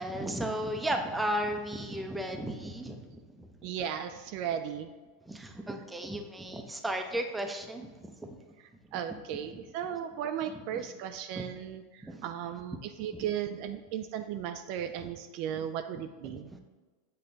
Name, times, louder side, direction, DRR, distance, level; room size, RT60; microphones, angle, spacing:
voice 1, 0.0-3.7 5.3-8.4 8.9-9.0 10.5-10.9 11.4-11.5 12.0-12.3 13.1-13.2 15.0-15.1 16.2-16.4, right 1 dB, 10° right, 4 dB, 0.7 m, -35 dB
voice 2, 3.6-4.9 8.9-16.5, right 9 dB, 55° right, 7 dB, 0.4 m, -36 dB
7.7 x 3.3 x 3.9 m, 1.3 s
hypercardioid pair, 95°, 0 cm